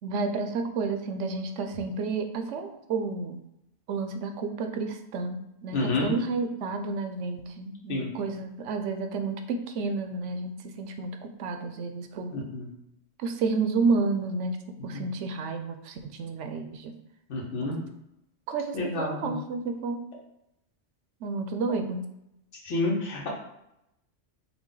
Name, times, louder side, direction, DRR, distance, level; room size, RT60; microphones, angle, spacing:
voice 1, 0.0-3.4 3.9-12.4 13.2-14.6 14.8-16.9 17.6-17.8 18.5-20.1 21.2-22.1, right 4 dB, 80° right, 6 dB, 0.9 m, -31 dB
voice 2, 5.7-6.1 7.9-8.1 12.3-12.7 14.9-15.0 17.3-17.8 18.7-19.3 22.6-23.3, left 2 dB, 75° left, -3 dB, 1.4 m, -29 dB
5.8 x 2.2 x 3.8 m, 0.83 s
omnidirectional pair, 1.2 m